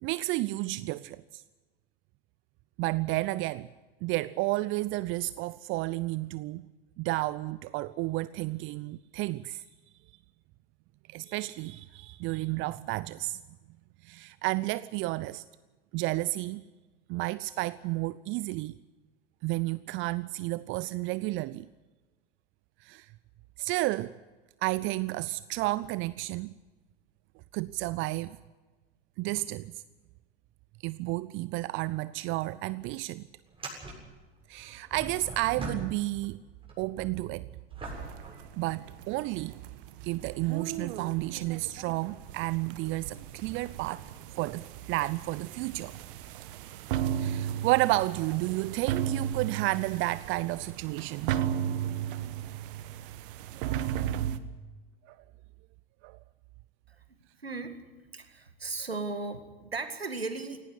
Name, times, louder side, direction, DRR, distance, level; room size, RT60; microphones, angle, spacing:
voice 1, 0.0-1.4 2.8-3.7 4.0-6.7 7.0-9.6 11.1-13.4 14.0-15.4 15.9-16.6 17.1-18.7 19.4-21.7 22.8-23.1 23.6-24.1 24.6-26.5 27.5-28.4 29.2-29.8 30.8-33.2 34.5-36.4 36.8-37.5 38.6-39.6 40.0-44.0 44.3-45.9 47.2-51.3 55.1-55.2 56.0-56.2, right 19 dB, 40° right, 18 dB, 0.6 m, -31 dB
sound 1, 32.2-32.3 32.5-32.6 33.4-36.3 36.6-39.3 40.0-40.1 44.2-44.4 45.7-45.8, right 2 dB, 20° right, 7.5 m, -43 dB
sound 2, 37.9-54.4, right 10 dB, 60° right, 1.3 m, -35 dB
voice 2, 57.4-57.8 58.1-60.6, right 3 dB, 90° right, 9 dB, 2.0 m, -36 dB
18.5 x 17.5 x 9.5 m, 1.2 s
figure-of-eight pair, 80°, 30 cm